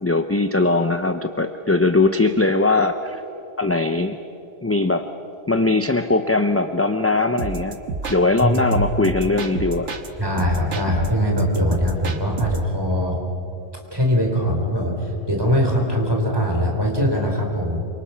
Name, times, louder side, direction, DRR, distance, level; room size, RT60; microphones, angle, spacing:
voice 1, 0.0-3.2 3.6-4.2 4.6-5.1 5.5-7.8 8.1-10.0, left 3 dB, 15° left, 7 dB, 0.5 m, -20 dB
sound 1, 7.4-10.1 10.4-12.7, right 4 dB, 85° right, 1.6 m, -30 dB
voice 2, 10.2-13.2 13.9-17.8, equal, 20° right, 0 dB, 3.9 m, -21 dB
27.5 x 25.0 x 5.8 m, 2.9 s
omnidirectional pair, 1.2 m